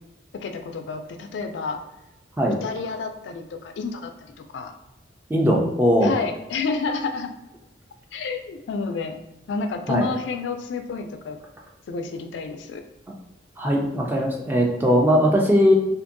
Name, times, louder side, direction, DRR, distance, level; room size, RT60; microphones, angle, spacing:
voice 1, 0.3-1.8 2.6-4.1 4.5-4.7 6.0-7.3 8.1-9.1 9.5-11.4 11.9-12.8, left 4 dB, 75° left, 7 dB, 0.3 m, -30 dB
voice 2, 5.3-6.2 9.9-10.0 13.6-15.7, equal, 10° right, -1 dB, 0.3 m, -19 dB
2.6 x 2.5 x 2.5 m, 0.93 s
head